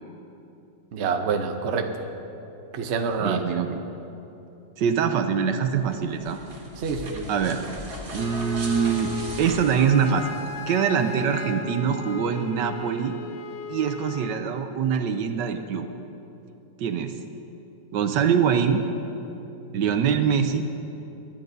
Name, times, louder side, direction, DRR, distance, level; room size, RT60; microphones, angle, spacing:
voice 1, 0.9-2.1 2.7-3.4 6.8-7.3 19.7-19.8, right 5 dB, 55° right, 5 dB, 0.8 m, -27 dB
voice 2, 3.2-3.8 4.8-6.4 7.3-7.6 8.1-10.3 10.7-13.1 13.7-15.8 16.8-17.1 17.9-18.8 19.7-20.6, right 7 dB, 75° right, 7 dB, 1.3 m, -24 dB
sound 1, 5.8-10.7, right 1 dB, 40° right, 1.5 m, -39 dB
Wind instrument woodwind instrument, 8.1-14.4, left 5 dB, 65° left, 1.0 m, -37 dB
22.0 x 10.5 x 2.7 m, 2.9 s
omnidirectional pair, 2.0 m